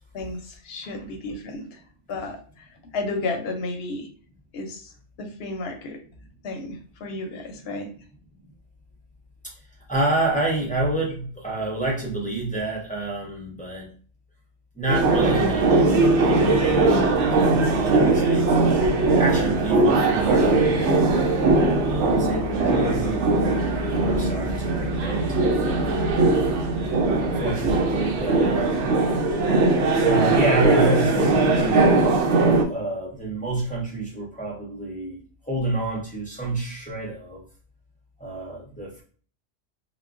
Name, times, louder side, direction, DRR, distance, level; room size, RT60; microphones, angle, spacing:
voice 1, 0.1-1.8 2.1-2.4 2.9-4.1 4.5-4.8 5.2-6.0 6.4-7.9, left 2 dB, 65° left, 4 dB, 0.7 m, -32 dB
voice 2, 9.9-13.9 14.7-17.0 17.3-18.6 19.2-23.2 24.0-25.3 25.6-26.1 27.1-28.8 30.0-31.9 32.7-37.4 38.2-39.0, right 2 dB, 10° left, -4 dB, 0.5 m, -28 dB
sound 1, 14.9-32.6, right 2 dB, 75° right, 0.9 m, -20 dB
3.7 x 2.1 x 2.4 m, 0.42 s
omnidirectional pair, 1.2 m